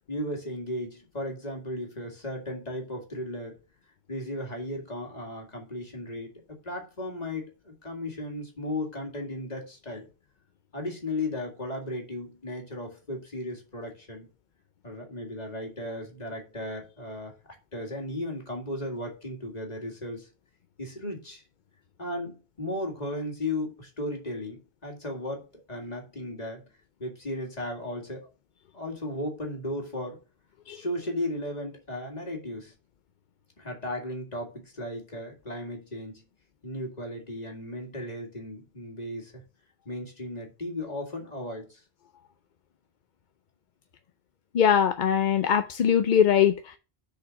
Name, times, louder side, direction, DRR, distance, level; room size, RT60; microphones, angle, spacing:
voice 1, 0.1-3.6 4.1-6.3 6.6-10.1 10.7-14.3 14.8-20.3 20.8-21.4 22.0-25.4 25.7-26.7 27.0-28.3 28.7-30.2 30.7-32.7 33.6-36.2 36.6-39.4 39.9-41.8, left 1 dB, 40° left, 2.2 m, -35 dB
voice 2, 44.5-46.8, left 8 dB, 55° left, 0.6 m, -22 dB
6.8 x 4.9 x 6.3 m
omnidirectional pair, 1.1 m